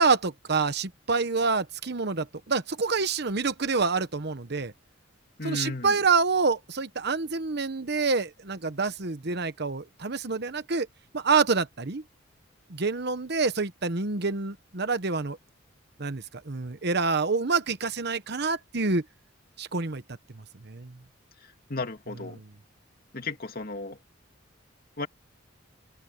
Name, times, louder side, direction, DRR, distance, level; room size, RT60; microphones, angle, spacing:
voice 1, 0.0-4.7 5.4-10.9 11.1-12.0 12.7-15.4 16.0-19.0 19.6-20.0 20.3-20.9 22.3-22.5, right 4 dB, 55° right, 1.1 m, -27 dB
voice 2, 5.4-6.0 21.7-22.4 23.1-24.0 25.0-25.1, left 3 dB, 50° left, 2.5 m, -34 dB
open air
head